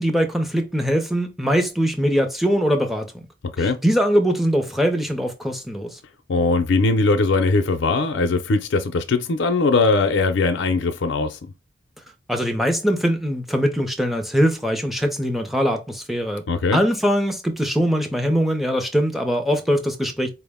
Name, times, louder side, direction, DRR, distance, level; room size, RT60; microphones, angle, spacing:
voice 1, 0.0-3.2 3.6-6.0 12.3-16.4 16.7-20.3, equal, ahead, 0.5 m, -22 dB
voice 2, 6.3-11.4 16.5-16.8, left 3 dB, 75° left, 0.5 m, -20 dB
4.6 x 2.1 x 3.5 m
head